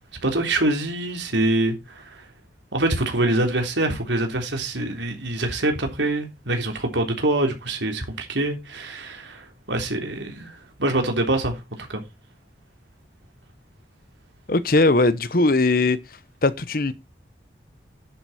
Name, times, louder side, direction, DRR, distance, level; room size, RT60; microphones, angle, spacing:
voice 1, 0.2-2.0 2.7-10.5 10.8-11.6 11.9-12.0, right 1 dB, 85° right, 3.5 m, -24 dB
voice 2, 14.5-16.0 16.4-16.9, left 2 dB, 50° left, 1.0 m, -19 dB
11.0 x 8.0 x 4.2 m
head